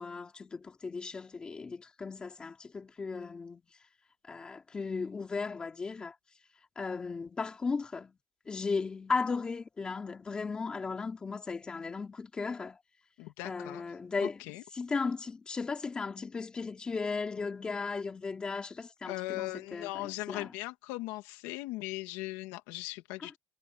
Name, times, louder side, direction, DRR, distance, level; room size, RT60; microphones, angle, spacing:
voice 1, 0.0-3.6 4.3-6.1 6.8-8.1 8.5-12.8 13.4-14.4 14.7-20.5, left 4 dB, 20° left, 3.0 m, -36 dB
voice 2, 13.2-13.8 14.2-14.6 19.0-23.4, left 19 dB, 85° left, 2.1 m, -39 dB
cardioid pair, 150°, 5 cm